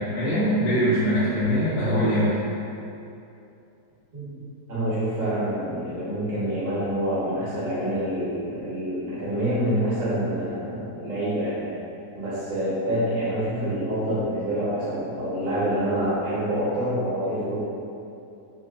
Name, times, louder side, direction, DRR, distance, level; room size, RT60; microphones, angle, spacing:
voice 1, 0.0-2.4, equal, 70° left, -13 dB, 1.3 m, -22 dB
voice 2, 4.7-11.7 12.1-17.6, right 1 dB, 40° right, -10 dB, 1.1 m, -26 dB
3.3 x 2.6 x 2.4 m, 2.7 s
omnidirectional pair, 1.8 m